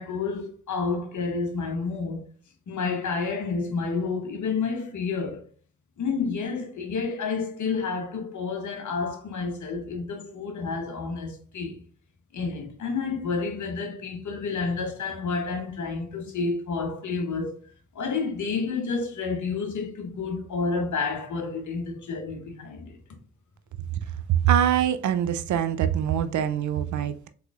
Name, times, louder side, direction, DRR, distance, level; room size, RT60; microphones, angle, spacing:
voice 1, 0.0-2.2 2.7-5.4 6.0-11.8 12.3-17.6 17.9-23.0, left 4 dB, 55° left, 1.0 m, -30 dB
voice 2, 24.3-27.3, right 10 dB, 60° right, 0.4 m, -23 dB
3.6 x 3.2 x 2.3 m
hypercardioid pair, 45°, 35 cm